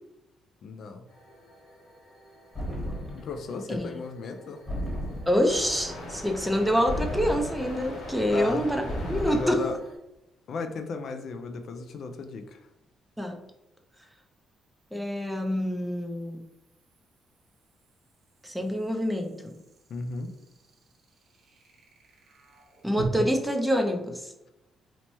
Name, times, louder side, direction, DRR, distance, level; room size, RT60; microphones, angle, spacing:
voice 1, 0.6-1.1 3.1-4.6 8.3-8.7 9.3-9.8 10.5-12.7 19.9-20.3, left 4 dB, 60° left, 6 dB, 0.4 m, -35 dB
sound 1, 1.1-10.0, left 1 dB, 80° left, 1.1 m, -42 dB
sound 2, 2.5-3.4 4.7-5.6 6.9-7.9 8.9-9.7, equal, 25° left, 1.3 m, -34 dB
voice 2, 5.3-8.8 9.1-9.6 13.2-13.4 14.9-16.4 18.4-19.6 22.8-24.3, equal, 5° right, 3 dB, 0.5 m, -26 dB
sound 3, 9.4-9.5 12.9-23.1, right 7 dB, 70° right, 0.8 m, -50 dB
3.0 x 2.1 x 4.1 m, 0.90 s
cardioid pair, 90°, 0 cm